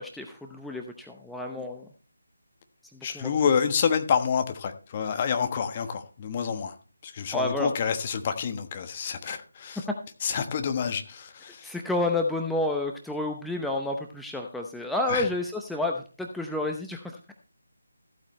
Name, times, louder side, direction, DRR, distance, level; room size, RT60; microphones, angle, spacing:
voice 1, 0.0-1.9 2.9-3.3 7.3-7.7 11.6-17.2, left 2 dB, ahead, 1 dB, 0.7 m, -30 dB
voice 2, 3.0-6.7 7.0-9.8 10.2-11.7 15.1-15.3, left 7 dB, 30° left, 7 dB, 1.2 m, -28 dB
15.0 x 8.5 x 3.2 m, 0.38 s
figure-of-eight pair, 155°, 0 cm